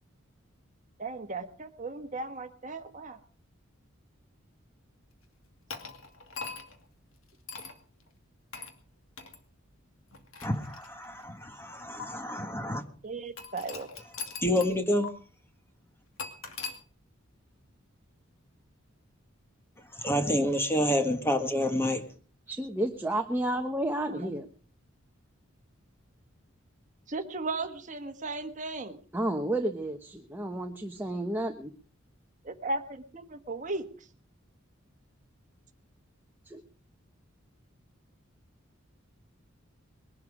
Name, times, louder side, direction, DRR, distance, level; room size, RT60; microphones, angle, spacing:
voice 1, 1.0-3.2 13.0-13.9 24.1-24.3 27.1-29.0 32.4-33.9, right 3 dB, 35° right, 8 dB, 1.4 m, -36 dB
sound 1, 5.7-6.8 7.5-7.8 8.5-8.8 9.2-9.4 10.1-11.2 12.0-12.1 13.4-14.8 15.0-15.1 16.2-16.8, left 5 dB, 85° left, 2.4 m, -41 dB
voice 2, 10.4-12.8 14.4-15.1 19.9-22.0, left 1 dB, 10° left, 6 dB, 1.6 m, -28 dB
voice 3, 22.5-24.5 29.1-31.7 36.5-36.6, right 1 dB, 10° right, 4 dB, 1.0 m, -31 dB
21.5 x 11.5 x 4.9 m, 0.42 s
head